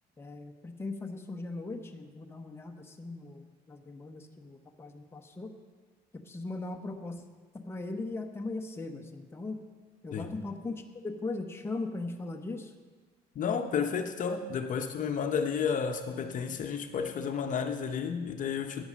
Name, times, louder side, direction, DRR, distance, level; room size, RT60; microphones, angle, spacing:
voice 1, 0.2-5.5 6.1-7.2 7.5-9.6 10.0-12.7, left 3 dB, 15° left, 4 dB, 0.8 m, -39 dB
voice 2, 13.4-18.8, left 6 dB, 50° left, 6 dB, 0.8 m, -32 dB
8.9 x 7.0 x 6.2 m, 1.4 s
cardioid pair, 110°, 17 cm